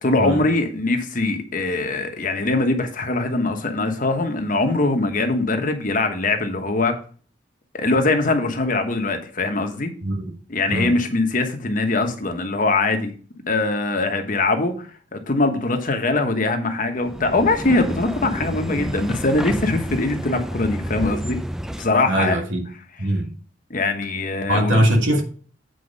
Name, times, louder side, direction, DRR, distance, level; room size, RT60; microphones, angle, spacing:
voice 1, 0.0-6.9 7.7-9.9 10.5-13.1 13.5-21.4 21.8-22.4 23.7-24.8, left 2 dB, 45° left, 1.2 m, -22 dB
voice 2, 10.0-10.3 10.7-10.9 22.1-22.6 23.0-23.3 24.5-25.2, equal, 90° right, 1.6 m, -21 dB
sound 1, 17.0-22.1, equal, 5° right, 0.3 m, -29 dB
8.0 x 4.6 x 5.3 m
head